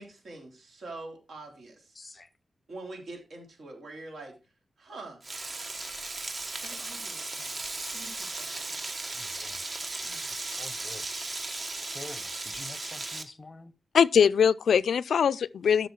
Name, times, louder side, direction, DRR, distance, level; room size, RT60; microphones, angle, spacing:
voice 1, 0.0-2.0 2.7-4.4 4.8-5.2 6.4-7.7 7.9-9.2 10.0-10.4, right 2 dB, 60° right, 3.3 m, -45 dB
voice 2, 1.9-2.3 9.1-9.6 10.3-11.5 11.9-13.7, left 3 dB, 25° left, 0.7 m, -47 dB
Frying (food), 5.2-13.2, right 2 dB, 35° right, 1.2 m, -36 dB
voice 3, 13.9-15.9, left 7 dB, 85° left, 0.4 m, -22 dB
12.5 x 6.2 x 4.6 m
wide cardioid pair, 170°, 0 cm